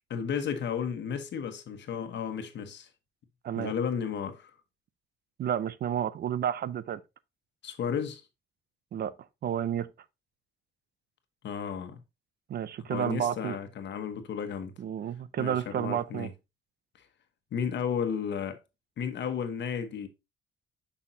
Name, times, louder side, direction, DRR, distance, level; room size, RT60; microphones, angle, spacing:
voice 1, 0.1-2.9 3.6-4.5 7.6-8.2 11.4-12.0 12.9-14.7 15.4-16.3 17.5-18.6 19.0-20.1, left 7 dB, 65° left, 1.2 m, -33 dB
voice 2, 5.4-7.0 8.9-9.1 9.4-9.9 12.5-13.6 14.8-16.3, right 9 dB, 55° right, 0.5 m, -31 dB
6.1 x 5.8 x 2.8 m
cardioid pair, 90°, 20 cm